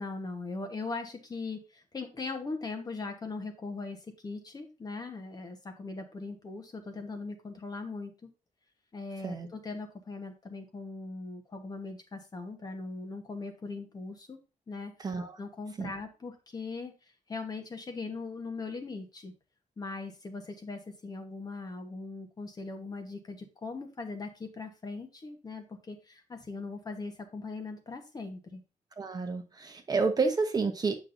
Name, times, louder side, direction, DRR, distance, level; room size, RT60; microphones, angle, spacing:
voice 1, 0.0-4.0 4.2-8.3 8.9-14.4 14.7-15.1 15.4-16.9 17.3-19.3 19.8-28.6, left 3 dB, 30° left, 4 dB, 1.1 m, -40 dB
voice 2, 15.0-15.3 15.8-15.9 29.0-30.9, right 4 dB, 30° right, 6 dB, 0.8 m, -29 dB
8.4 x 6.1 x 2.6 m, 0.30 s
wide cardioid pair, 170°, 14 cm